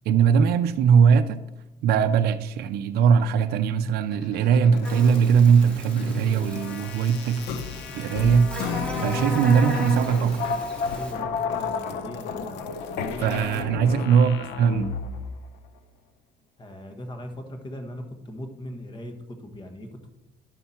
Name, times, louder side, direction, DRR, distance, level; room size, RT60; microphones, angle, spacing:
voice 1, 0.1-1.4 1.8-7.4 7.9-8.5 9.0-10.6 13.2-14.9, right 7 dB, 70° right, 8 dB, 0.5 m, -20 dB
sound 1, 4.1-15.4, left 4 dB, 90° left, 0.7 m, -32 dB
Buzz, 4.8-11.1, equal, 5° left, 2.2 m, -35 dB
voice 2, 10.9-14.1 16.6-20.1, equal, 25° left, 5 dB, 1.4 m, -39 dB
10.5 x 5.7 x 4.3 m, 1.0 s
cardioid pair, 110°, 17 cm